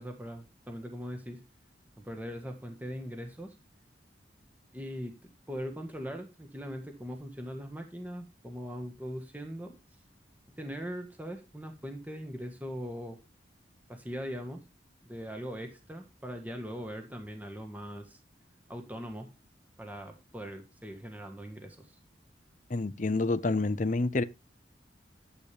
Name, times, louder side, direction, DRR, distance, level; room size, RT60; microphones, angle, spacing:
voice 1, 0.0-1.4 2.0-3.5 4.7-9.7 10.6-13.2 13.9-14.6 15.1-18.2 18.7-19.3 19.8-22.0, equal, 10° right, 1.5 m, -40 dB
voice 2, 22.7-24.2, left 3 dB, 45° left, 0.7 m, -28 dB
12.0 x 8.4 x 3.4 m
head